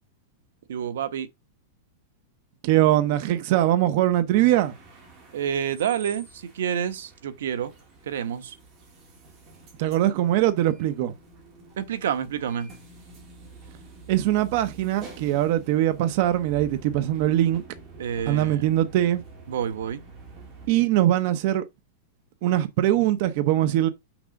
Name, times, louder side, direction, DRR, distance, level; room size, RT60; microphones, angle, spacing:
voice 1, 0.7-1.3 5.3-7.7 8.1-8.6 11.8-12.7 18.0-18.6 19.5-20.0, right 8 dB, 80° right, 1.0 m, -28 dB
voice 2, 2.6-4.7 9.8-11.1 14.1-17.6 18.3-19.2 20.7-21.6 22.4-23.9, right 13 dB, 45° right, 0.7 m, -22 dB
sound 1, 4.3-20.7, right 3 dB, 30° right, 2.2 m, -47 dB
6.1 x 4.8 x 5.1 m
supercardioid pair, 165°, 0 cm